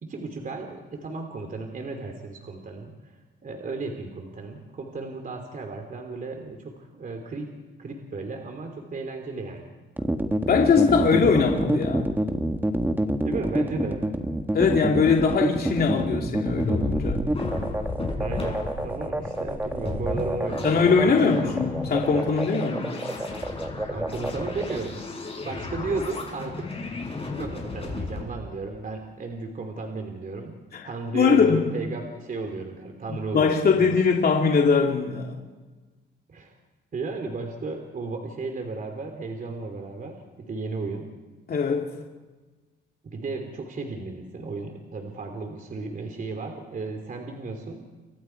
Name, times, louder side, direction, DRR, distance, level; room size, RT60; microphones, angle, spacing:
voice 1, 0.0-3.2 3.4-7.5 7.8-9.7 13.2-14.0 18.2-21.4 23.9-25.0 25.4-26.9 27.3-30.6 30.8-34.0 36.3-36.5 36.9-41.1 43.0-47.9, right 3 dB, 45° right, 3.3 m, -34 dB
sound 1, 10.0-24.8, right 1 dB, 10° right, 1.8 m, -27 dB
voice 2, 10.5-12.1 14.5-17.2 20.6-22.9 30.7-30.8 31.1-31.7 33.1-35.3 41.5-41.9, left 5 dB, 50° left, 2.6 m, -21 dB
sound 2, 16.6-28.2, left 2 dB, 30° left, 6.7 m, -34 dB
30.0 x 25.5 x 4.7 m
cardioid pair, 90°, 20 cm